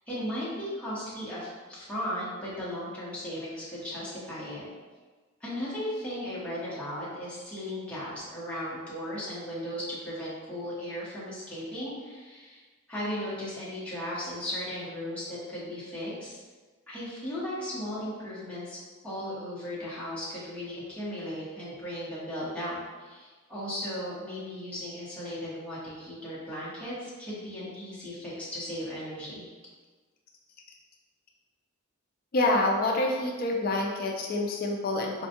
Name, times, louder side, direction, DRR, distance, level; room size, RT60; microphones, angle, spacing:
voice 1, 0.1-4.7 5.4-12.6 12.9-16.4 16.9-18.8 19.0-29.5, equal, 5° left, -10 dB, 0.9 m, -36 dB
voice 2, 32.3-35.3, left 2 dB, 45° left, 0 dB, 0.4 m, -27 dB
4.3 x 2.3 x 2.7 m, 1.4 s
head